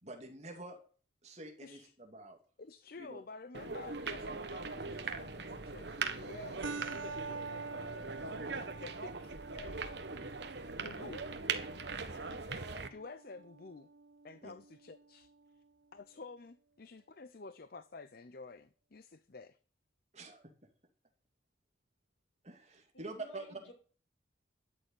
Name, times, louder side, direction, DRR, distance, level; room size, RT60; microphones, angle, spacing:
voice 1, 0.0-0.8 1.2-2.4 3.0-3.2 11.9-12.1 14.4-14.5 20.1-20.5 22.4-23.6, right 2 dB, 35° right, 2.7 m, -47 dB
voice 2, 1.6-1.9 2.6-8.2 8.8-10.2 10.8-11.3 12.1-12.4 12.9-13.9 14.2-15.3 15.9-19.6, left 3 dB, 50° left, 0.6 m, -51 dB
sound 1, 3.5-12.9, right 4 dB, 60° right, 1.3 m, -40 dB
sound 2, 6.6-15.6, right 4 dB, 75° right, 0.8 m, -47 dB
voice 3, 22.9-23.7, right 1 dB, 80° left, 5.8 m, -54 dB
13.0 x 6.9 x 9.9 m
head